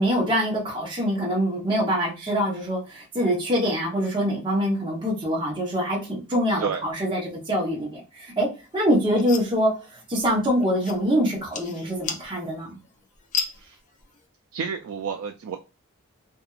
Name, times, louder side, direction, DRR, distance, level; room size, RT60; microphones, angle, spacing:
voice 1, 0.0-8.5 8.7-12.8, equal, 20° right, -4 dB, 0.9 m, -24 dB
sound 1, 8.6-14.2, left 6 dB, 35° left, 0.4 m, -36 dB
voice 2, 14.5-15.6, right 6 dB, 75° right, 4 dB, 0.3 m, -30 dB
2.7 x 2.5 x 2.4 m, 0.30 s
head